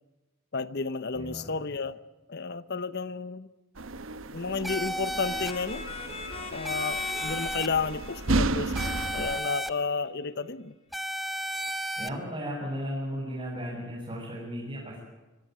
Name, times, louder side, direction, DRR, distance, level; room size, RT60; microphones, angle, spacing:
voice 1, 0.5-2.0 2.3-3.5 4.3-5.8 6.5-10.7, left 4 dB, 50° left, 16 dB, 0.9 m, -32 dB
voice 2, 1.1-1.6 12.0-15.0, equal, 25° right, -5 dB, 7.4 m, -35 dB
sound 1, 3.8-9.4, right 2 dB, 70° right, 1.1 m, -33 dB
sound 2, 4.6-5.5 6.6-7.7 8.8-9.7 10.9-12.1, equal, ahead, 0.8 m, -33 dB
sound 3, 5.2-9.8, left 4 dB, 30° left, 2.9 m, -42 dB
25.0 x 17.5 x 9.6 m, 1.1 s
head